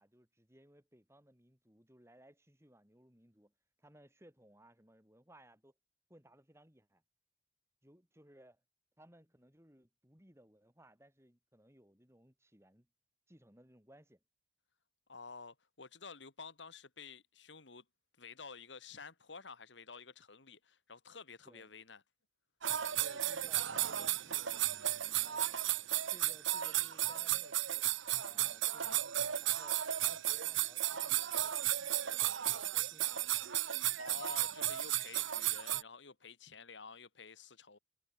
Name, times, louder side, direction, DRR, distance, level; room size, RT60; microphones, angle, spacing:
voice 1, 0.0-3.5 3.8-5.7 6.1-7.0 7.8-8.6 9.0-12.9 13.3-14.2 21.4-21.7 23.0-24.7 25.2-25.6 25.9-27.9 28.2-33.2, right 1 dB, 15° right, 5.9 m, -62 dB
voice 2, 15.1-17.8 18.2-22.0 34.0-37.8, left 5 dB, 70° left, 2.1 m, -51 dB
sound 1, 22.6-35.8, right 13 dB, 90° right, 1.1 m, -34 dB
head